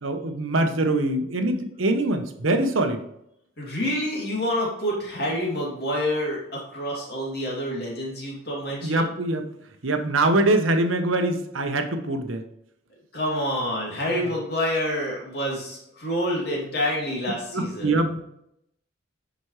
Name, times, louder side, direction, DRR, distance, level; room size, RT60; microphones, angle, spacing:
voice 1, 0.0-3.0 8.8-9.5 9.8-12.4 14.1-14.2 17.5-18.2, right 2 dB, 85° right, 6 dB, 1.0 m, -23 dB
voice 2, 3.6-9.1 13.1-17.9, equal, 50° left, -3 dB, 2.6 m, -27 dB
10.0 x 5.1 x 3.2 m, 0.77 s
head